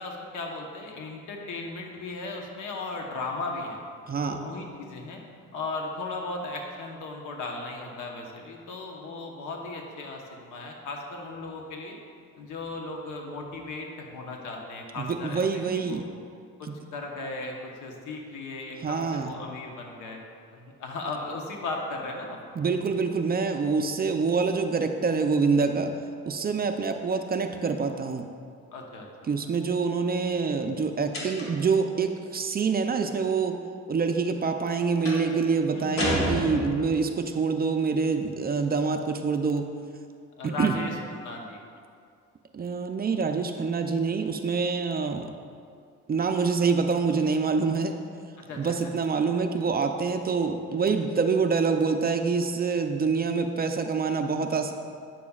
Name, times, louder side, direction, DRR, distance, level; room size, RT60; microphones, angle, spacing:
voice 1, 0.0-3.8 4.1-5.2 5.5-12.0 12.4-15.4 15.7-16.0 16.6-20.2 20.5-22.4 28.7-29.1 29.4-29.5 35.7-36.5 40.4-41.6 48.4-48.8, left 3 dB, 85° left, 1 dB, 1.1 m, -36 dB
voice 2, 4.1-4.4 15.0-16.0 16.7-16.8 18.8-19.3 22.6-25.9 26.3-28.3 29.3-33.6 33.9-39.6 40.4-40.7 42.5-45.3 46.1-48.0 48.5-54.7, right 5 dB, 30° right, 6 dB, 0.5 m, -26 dB
sound 1, 31.1-31.7 35.0-35.3 36.0-37.0, left 1 dB, 45° left, 1.8 m, -29 dB
9.2 x 7.0 x 2.4 m, 2.3 s
cardioid pair, 90°, 30 cm